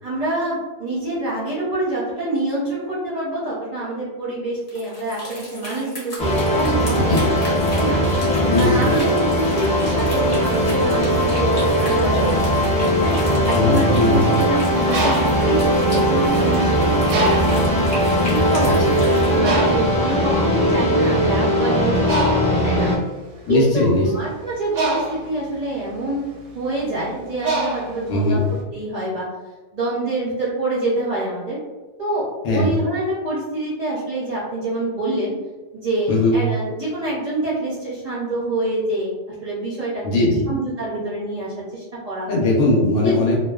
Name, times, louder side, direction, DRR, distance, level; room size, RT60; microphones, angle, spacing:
voice 1, 0.0-12.3 13.0-13.2 13.4-17.7 18.2-19.0 19.3-22.9 23.5-26.3 26.5-28.4 28.7-29.3 29.7-31.6 32.0-35.3 35.7-39.1 39.4-40.0 40.5-42.3 42.9-43.4, right 1 dB, 45° right, -7 dB, 0.6 m, -26 dB
sound 1, 4.6-19.4, left 1 dB, 50° left, 0.9 m, -36 dB
sound 2, 6.2-23.0, equal, 10° left, 0.4 m, -19 dB
voice 2, 6.9-7.3 8.5-8.9 13.5-14.2 18.6-19.0 23.5-24.1 28.1-28.4 32.4-32.7 36.1-36.3 40.0-40.5 42.3-43.4, left 2 dB, 80° left, -3 dB, 1.1 m, -19 dB
Bird, 14.7-16.5 17.1-17.8 18.4-18.6 18.8-28.6, right 2 dB, 85° right, 1.0 m, -26 dB
2.5 x 2.2 x 2.2 m, 1.2 s
omnidirectional pair, 1.3 m